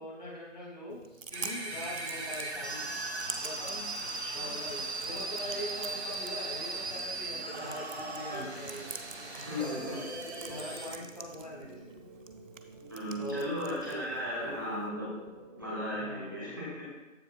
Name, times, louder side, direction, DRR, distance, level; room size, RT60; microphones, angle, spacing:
voice 1, 0.0-2.9 3.4-3.9 4.3-8.9 9.5-10.0 10.5-11.9 13.2-13.5 16.0-16.4, left 1 dB, 35° left, -5 dB, 2.7 m, -42 dB
Chewing mastication, 0.9-14.9, right 4 dB, 70° right, 0.8 m, -48 dB
sound 1, 1.3-10.9, right 2 dB, 55° right, 1.1 m, -38 dB
sound 2, 1.6-16.1, right 1 dB, 35° right, 1.9 m, -53 dB
voice 2, 9.3-9.9 12.9-15.1 15.6-16.7, left 1 dB, 15° right, -8 dB, 1.2 m, -36 dB
14.0 x 5.0 x 2.4 m, 1.1 s
figure-of-eight pair, 170°, 40 cm